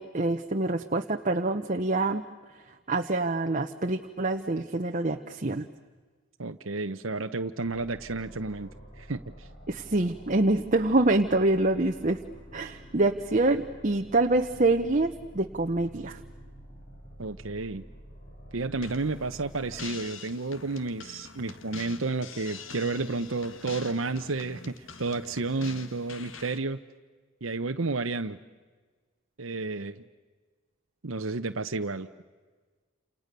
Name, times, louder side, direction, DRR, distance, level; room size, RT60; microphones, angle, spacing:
voice 1, 0.0-2.2 2.9-5.7 9.7-12.2 12.5-16.2, right 2 dB, 40° right, 5 dB, 1.0 m, -26 dB
voice 2, 6.4-8.7 9.0-9.5 17.2-17.8 18.5-26.8 27.4-28.4 29.4-30.0 31.0-32.1, right 3 dB, 80° right, 7 dB, 0.9 m, -31 dB
sound 1, 7.6-19.8, equal, 45° left, 5.6 m, -48 dB
sound 2, 18.8-26.6, left 5 dB, 70° left, 1.7 m, -45 dB
30.0 x 28.5 x 6.8 m, 1.4 s
head